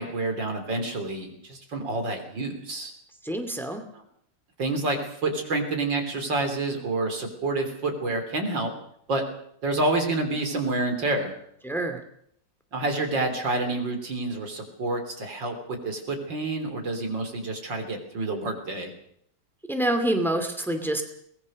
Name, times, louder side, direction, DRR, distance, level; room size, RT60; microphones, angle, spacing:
voice 1, 0.0-2.9 4.6-8.7 9.1-9.2 9.6-11.3 12.7-18.9, right 2 dB, 90° right, 5 dB, 4.2 m, -28 dB
voice 2, 3.2-3.8 11.6-12.0 19.7-21.0, right 1 dB, ahead, 6 dB, 2.3 m, -26 dB
23.0 x 19.0 x 6.5 m, 0.69 s
omnidirectional pair, 1.9 m